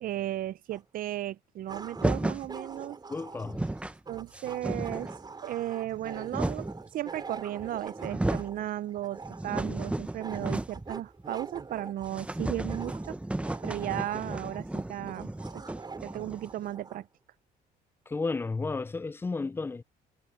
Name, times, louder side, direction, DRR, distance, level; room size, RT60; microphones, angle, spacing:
voice 1, 0.0-3.0 4.1-5.1 5.4-13.2 13.6-15.6 16.0-17.1, right 13 dB, 55° right, 0.6 m, -35 dB
sound 1, 0.7-0.8 1.7-17.1, right 4 dB, 25° right, 4.4 m, -45 dB
sound 2, 2.0-2.5 3.1-3.2 3.4-4.0 4.3-5.2 5.9-6.8 7.6-7.7 8.0-8.6 9.0-10.9 11.2-11.3 11.6-11.7 12.1-16.6, right 1 dB, 5° right, 0.8 m, -33 dB
voice 2, 3.1-3.6 18.1-19.8, left 3 dB, 15° left, 0.4 m, -32 dB
cardioid pair, 110°, 17 cm